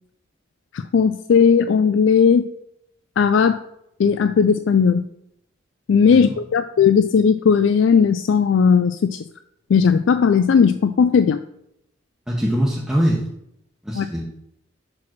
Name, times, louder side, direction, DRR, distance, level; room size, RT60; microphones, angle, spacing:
voice 1, 0.7-2.5 3.2-3.6 4.0-5.1 5.9-9.2 9.7-11.4 13.9-14.1, left 6 dB, 75° left, 10 dB, 0.3 m, -16 dB
voice 2, 12.3-13.2 13.8-14.3, equal, 5° right, -5 dB, 1.0 m, -22 dB
6.1 x 4.8 x 5.9 m, 0.77 s
head